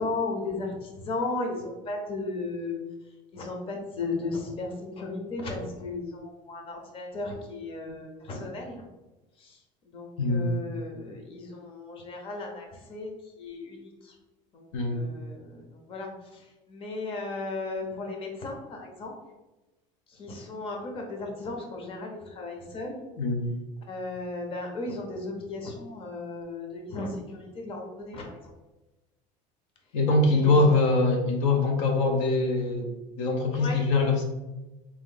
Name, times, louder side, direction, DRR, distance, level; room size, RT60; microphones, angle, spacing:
voice 1, 0.0-2.8 3.3-8.8 9.4-14.1 14.5-19.1 20.1-23.0 23.9-28.5 30.3-30.8 33.6-33.8, left 3 dB, 35° left, 2 dB, 0.8 m, -35 dB
voice 2, 10.2-10.5 14.7-15.0 23.2-23.5 29.9-32.9 33.2-34.2, left 3 dB, 75° left, 3 dB, 0.8 m, -23 dB
3.5 x 3.0 x 3.9 m, 1.1 s
cardioid pair, 145°, 17 cm